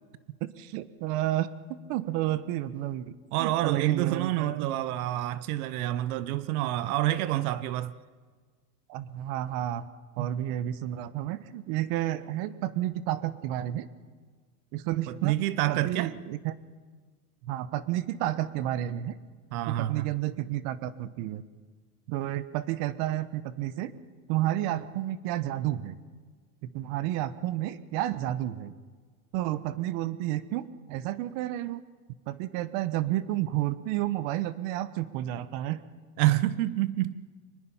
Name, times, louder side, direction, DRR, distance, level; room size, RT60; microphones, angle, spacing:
voice 1, 0.4-3.1 3.4-4.7 8.9-9.9 10.2-13.9 14.7-15.4 15.7-16.5 17.4-19.2 19.7-21.4 22.1-23.9 24.3-26.0 26.6-28.7 29.3-31.8 32.3-35.8, right 13 dB, 55° right, 1.2 m, -31 dB
voice 2, 3.3-7.9 10.2-10.3 15.1-16.1 19.5-20.1 36.2-37.2, right 15 dB, 75° right, 1.0 m, -28 dB
23.5 x 20.5 x 5.7 m
supercardioid pair, 140°, 44 cm